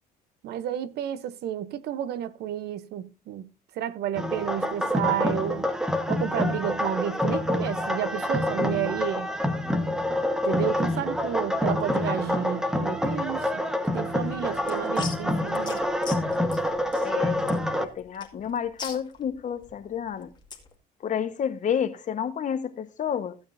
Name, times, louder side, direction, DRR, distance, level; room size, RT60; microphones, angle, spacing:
voice 1, 0.4-3.4 3.8-5.7 6.1-9.3 10.4-13.6 13.9-15.8, right 10 dB, 75° right, 0.9 m, -31 dB
sound 1, 4.1-17.8, left 1 dB, 5° right, 1.3 m, -27 dB
sound 2, 14.2-20.7, left 5 dB, 25° left, 2.1 m, -43 dB
voice 2, 17.0-17.4 17.8-20.3 21.0-23.4, left 8 dB, 45° left, 1.4 m, -30 dB
15.5 x 8.8 x 2.7 m
cardioid pair, 110°, 17 cm